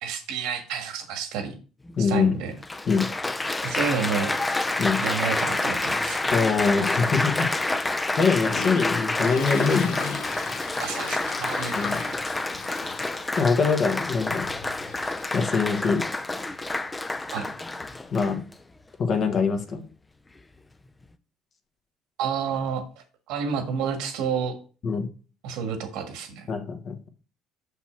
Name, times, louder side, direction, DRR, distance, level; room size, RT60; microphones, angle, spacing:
voice 1, 0.0-1.6 2.0-2.5 3.6-4.4 5.0-6.2 8.5-8.6 10.8-11.7 12.0-12.2 17.3-17.5 22.2-22.9 23.3-24.6 25.4-26.5, right 6 dB, 80° right, 7 dB, 1.6 m, -30 dB
Applause, 1.9-2.0 2.6-18.5 19.3-19.6, left 2 dB, 15° left, 0.5 m, -28 dB
voice 2, 2.0-2.3 2.9-3.1 4.8-5.0 6.3-7.5 8.2-10.2 11.7-12.0 13.4-14.5 15.3-16.0 18.1-18.4 19.0-19.8 24.8-25.1 26.5-27.1, left 5 dB, 45° left, 6 dB, 1.3 m, -23 dB
Toilet flush, 7.9-18.1, left 7 dB, 75° left, 1.0 m, -41 dB
6.1 x 5.5 x 4.4 m, 0.37 s
cardioid pair, 115°, 0 cm